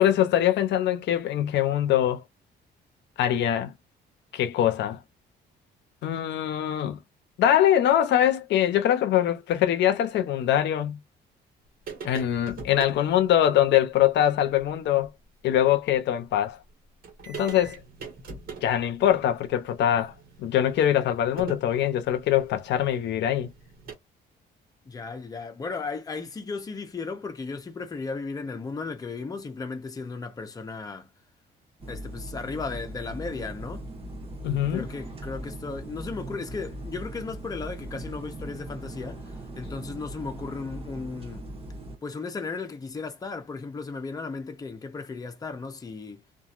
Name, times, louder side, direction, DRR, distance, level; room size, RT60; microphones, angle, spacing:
voice 1, 0.0-2.2 3.2-3.7 4.3-5.0 6.0-7.0 7.4-11.0 12.0-15.1 15.4-16.6 17.3-17.8 18.6-23.5 34.4-34.8, left 11 dB, 75° left, 0.6 m, -23 dB
sound 1, 11.9-13.0 14.6-14.7 15.0-15.1 16.7-16.8 17.0-23.9, right 4 dB, 55° right, 1.4 m, -43 dB
voice 2, 24.9-31.1 31.9-33.8 34.7-41.5 42.0-46.2, left 4 dB, 20° left, 0.8 m, -35 dB
sound 2, 31.8-42.0, right 1 dB, 30° right, 1.2 m, -39 dB
2.9 x 2.5 x 2.4 m
cardioid pair, 145°, 18 cm